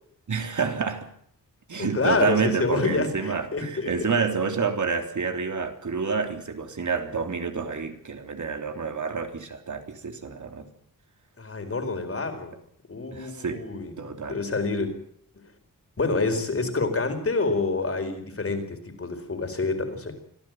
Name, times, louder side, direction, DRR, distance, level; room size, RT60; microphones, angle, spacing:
voice 1, 0.3-1.1 1.7-10.7 13.1-13.6 14.0-14.4, right 5 dB, 60° right, 6 dB, 3.4 m, -28 dB
voice 2, 1.8-4.1 11.4-12.5 12.9-14.9 16.0-20.2, left 3 dB, 40° left, 6 dB, 4.6 m, -27 dB
25.5 x 16.0 x 9.2 m, 0.66 s
wide cardioid pair, 155°, 34 cm